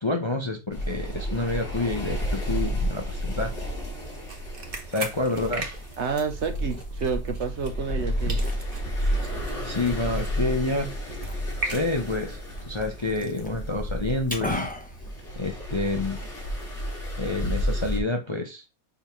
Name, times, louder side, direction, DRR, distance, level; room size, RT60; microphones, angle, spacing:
voice 1, 0.0-3.5 4.9-5.7 9.3-10.9 11.6-14.7 15.4-16.2 17.2-18.6, left 2 dB, 25° left, 0.6 m, -28 dB
sound 1, 0.7-18.0, equal, 50° left, 2.7 m, -31 dB
sound 2, 3.9-8.0 8.3-12.4, right 2 dB, 40° right, 1.5 m, -39 dB
Liquid, 4.9-15.9, left 1 dB, 5° left, 1.1 m, -41 dB
voice 2, 6.0-8.4, right 5 dB, 60° right, 0.9 m, -29 dB
6.9 x 3.5 x 5.9 m
omnidirectional pair, 1.5 m